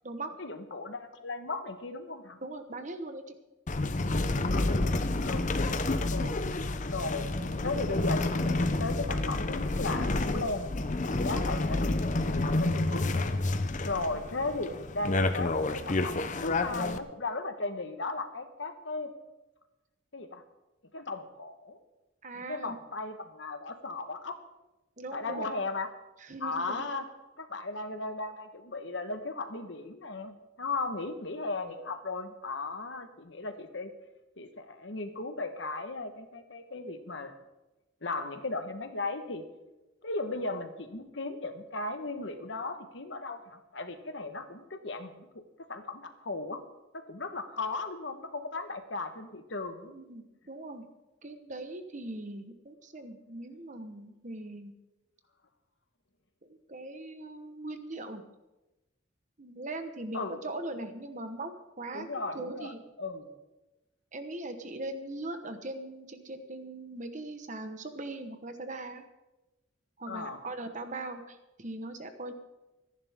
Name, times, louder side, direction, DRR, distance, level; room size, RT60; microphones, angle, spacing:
voice 1, 0.4-2.4 4.5-4.9 5.2-5.6 6.1-6.4 6.9-7.3 7.6-10.7 11.2-13.2 13.8-19.1 20.1-20.4 20.9-21.8 22.3-24.4 25.1-25.9 26.4-27.1 27.4-33.9 34.4-37.3 38.0-39.4 40.0-45.4 45.7-46.6 46.9-49.9 60.1-60.5 61.9-63.3 70.0-70.4, left 3 dB, 65° left, 8 dB, 1.3 m, -36 dB
voice 2, 2.4-3.4 6.2-6.4 11.2-11.5 22.2-22.8 25.0-25.5 26.2-26.8 30.9-31.0 49.9-50.9 51.2-54.7 56.4-58.2 59.4-62.1 62.3-62.8 64.1-69.0 70.0-72.3, right 2 dB, 40° right, 7 dB, 1.2 m, -40 dB
sound 1, 3.7-17.0, left 2 dB, 40° left, 0.7 m, -29 dB
25.5 x 10.5 x 3.7 m, 1.0 s
head